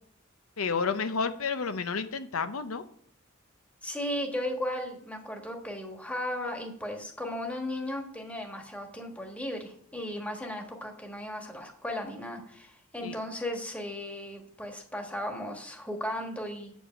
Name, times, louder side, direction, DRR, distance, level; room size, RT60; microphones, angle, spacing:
voice 1, 0.6-2.8 13.0-13.1, left 5 dB, 85° left, 10 dB, 0.7 m, -30 dB
voice 2, 3.8-16.7, left 1 dB, 5° left, 2 dB, 1.4 m, -36 dB
8.1 x 5.4 x 7.5 m, 0.64 s
head